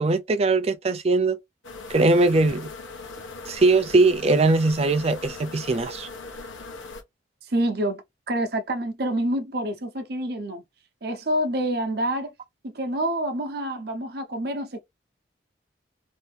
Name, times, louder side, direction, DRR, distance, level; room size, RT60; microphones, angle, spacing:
voice 1, 0.0-1.4 1.9-2.7 3.5-6.1, right 3 dB, 30° right, 0.3 m, -20 dB
sound 1, 1.6-7.0, left 3 dB, 80° left, 0.9 m, -40 dB
voice 2, 7.5-8.0 8.3-10.6 11.0-12.3 12.6-14.8, right 1 dB, 55° right, 0.8 m, -27 dB
2.8 x 2.6 x 3.2 m
head